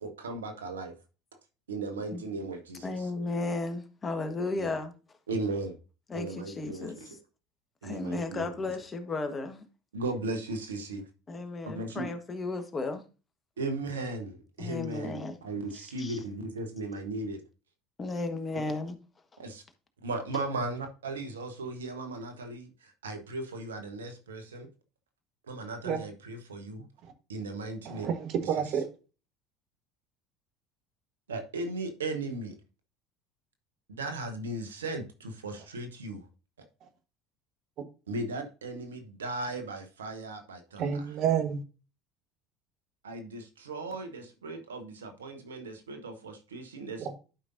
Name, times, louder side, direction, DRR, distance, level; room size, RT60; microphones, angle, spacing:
voice 1, 0.0-0.9 1.7-3.1 4.6-4.7 5.3-5.8 6.1-7.1 7.8-8.5 9.9-11.1 11.6-12.1 13.6-17.4 18.5-18.6 19.4-19.6 20.0-24.7 25.5-26.8 27.3-28.1 31.3-32.6 33.9-36.2 38.1-41.0 43.0-47.2, right 2 dB, 85° right, 1.2 m, -37 dB
voice 2, 2.8-4.9 6.1-7.0 7.8-9.6 11.3-13.0 14.6-15.4 16.0-16.2 18.0-18.9, left 3 dB, 30° left, 1.4 m, -34 dB
voice 3, 27.8-28.9 40.8-41.6 47.0-47.1, right 8 dB, 55° right, 1.3 m, -29 dB
11.5 x 5.2 x 2.7 m
hypercardioid pair, 70°, 0 cm